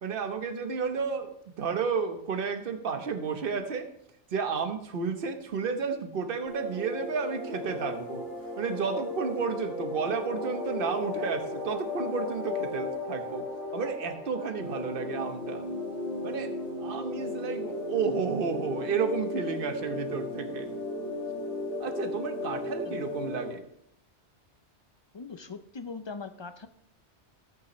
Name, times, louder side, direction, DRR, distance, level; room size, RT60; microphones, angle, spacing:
voice 1, 0.0-3.9 4.3-8.3 8.6-13.4 13.7-15.6 16.2-16.5 16.8-20.7 21.8-23.6, right 5 dB, 55° right, 6 dB, 1.1 m, -32 dB
sound 1, 6.5-23.5, left 2 dB, 80° left, 2.6 m, -35 dB
voice 2, 25.1-26.7, left 4 dB, 45° left, 10 dB, 0.3 m, -40 dB
13.5 x 8.6 x 3.1 m, 0.70 s
omnidirectional pair, 1.2 m